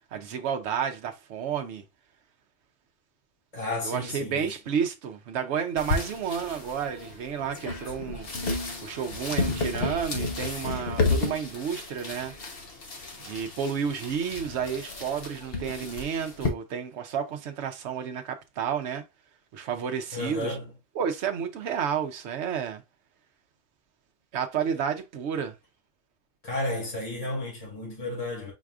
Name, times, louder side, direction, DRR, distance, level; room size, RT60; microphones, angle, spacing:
voice 1, 0.1-1.8 3.8-8.3 8.8-12.3 13.2-19.0 19.5-20.6 20.9-22.8 24.3-25.6, right 7 dB, 60° right, 0.9 m, -31 dB
voice 2, 3.5-4.5 20.1-20.7 26.4-28.5, left 2 dB, 30° left, 2.2 m, -32 dB
sound 1, 5.8-16.5, left 3 dB, 50° left, 1.1 m, -32 dB
4.7 x 4.1 x 2.4 m
omnidirectional pair, 1.4 m